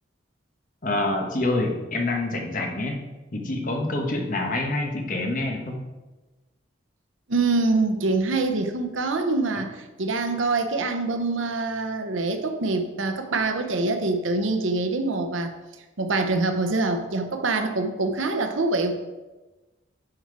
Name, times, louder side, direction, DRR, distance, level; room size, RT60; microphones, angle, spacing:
voice 1, 0.8-3.1 3.3-5.8, left 2 dB, 40° left, 2 dB, 1.2 m, -26 dB
voice 2, 7.3-15.5 16.0-18.9, right 3 dB, 85° right, 6 dB, 0.8 m, -25 dB
9.8 x 4.3 x 4.7 m, 1.1 s
head